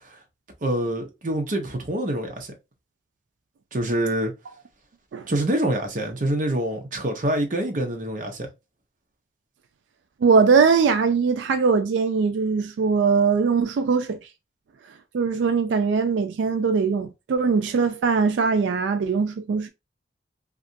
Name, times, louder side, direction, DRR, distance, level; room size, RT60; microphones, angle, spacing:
voice 1, 0.6-2.5 3.7-4.3 5.3-8.5, right 1 dB, 45° right, 0.7 m, -26 dB
voice 2, 10.2-14.2 15.1-19.7, right 5 dB, 90° right, 0.3 m, -21 dB
2.8 x 2.4 x 2.5 m
head